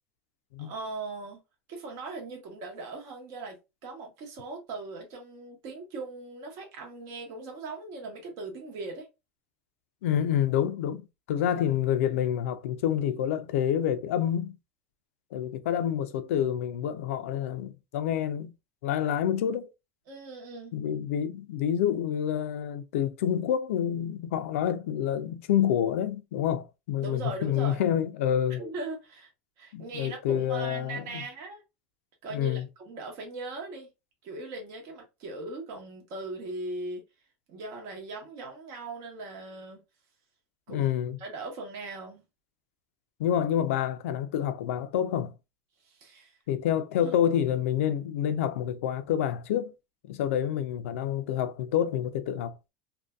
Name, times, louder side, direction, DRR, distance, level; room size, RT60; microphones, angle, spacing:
voice 1, 0.6-1.4 1.7-9.1 20.1-20.7 27.0-27.8 28.6-29.3 29.6-31.6 32.2-33.9 34.2-37.0 37.5-39.8 40.7-40.9 41.2-42.2 45.8-46.4 47.0-47.1, right 3 dB, 60° right, 0.9 m, -39 dB
voice 2, 10.0-11.0 11.3-14.6 15.3-18.5 18.8-19.7 20.7-28.6 29.7-31.2 32.3-32.7 40.7-41.2 43.2-45.3 46.5-49.7 50.1-52.6, left 10 dB, 85° left, 0.3 m, -28 dB
2.6 x 2.2 x 2.2 m
supercardioid pair, 110°, 7 cm